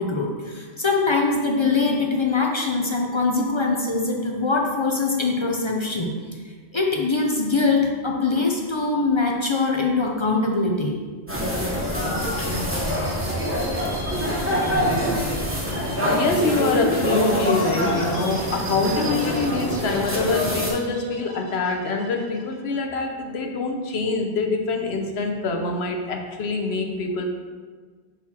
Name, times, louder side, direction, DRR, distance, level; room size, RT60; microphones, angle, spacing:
voice 1, 0.0-6.1 6.7-11.0, left 3 dB, 35° left, 0 dB, 0.5 m, -22 dB
sound 1, 11.3-20.7, equal, 10° right, 1.0 m, -24 dB
sound 2, 11.6-22.6, right 3 dB, 70° right, 1.4 m, -42 dB
voice 2, 16.0-27.2, left 3 dB, 70° left, 3 dB, 0.9 m, -25 dB
6.1 x 4.0 x 4.2 m, 1.5 s
omnidirectional pair, 1.1 m